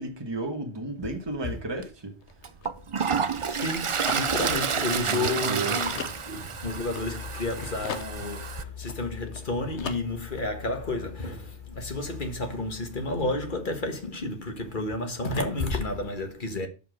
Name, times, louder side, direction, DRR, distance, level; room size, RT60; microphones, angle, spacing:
voice 1, 0.0-2.1 4.1-4.2 5.0-5.7, right 2 dB, 25° right, 1.4 m, -33 dB
Toilet flush, 1.8-1.9 2.4-8.6, right 6 dB, 40° right, 0.4 m, -29 dB
sound 1, 2.2-7.5 7.8-9.5 9.8-10.5, left 7 dB, 85° left, 1.2 m, -40 dB
voice 2, 3.5-16.7, left 2 dB, 50° left, 1.6 m, -31 dB
6.9 x 5.5 x 6.3 m
omnidirectional pair, 1.1 m